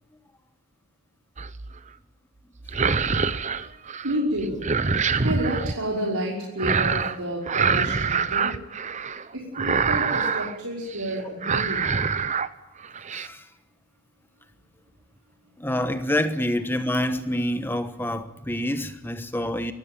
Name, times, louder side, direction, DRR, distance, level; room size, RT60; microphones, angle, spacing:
sound 1, 1.4-1.8 2.6-4.2 4.4-5.8 6.6-7.2 7.5-9.2 9.5-10.6 10.9-11.1 11.4-12.5 12.8-13.3, right 5 dB, 35° right, 0.8 m, -25 dB
voice 1, 4.0-4.6 5.2-8.5 9.3-11.9, right 1 dB, 90° right, 5.5 m, -29 dB
voice 2, 13.1-13.5 15.6-19.7, left 1 dB, 10° left, 1.2 m, -27 dB
24.0 x 15.5 x 9.2 m
head